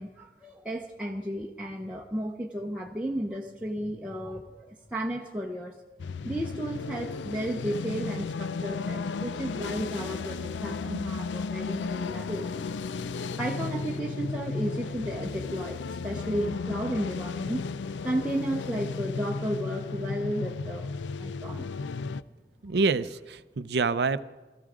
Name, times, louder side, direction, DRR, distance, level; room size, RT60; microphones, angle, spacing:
voice 1, 0.0-5.8 6.2-17.6 18.0-20.9 21.2-21.7, right 1 dB, 5° right, -2 dB, 0.8 m, -33 dB
sound 1, 6.0-22.2, left 4 dB, 90° left, 0.4 m, -34 dB
voice 2, 22.6-24.2, right 4 dB, 65° right, 14 dB, 0.5 m, -26 dB
20.0 x 14.0 x 5.0 m, 1.2 s
head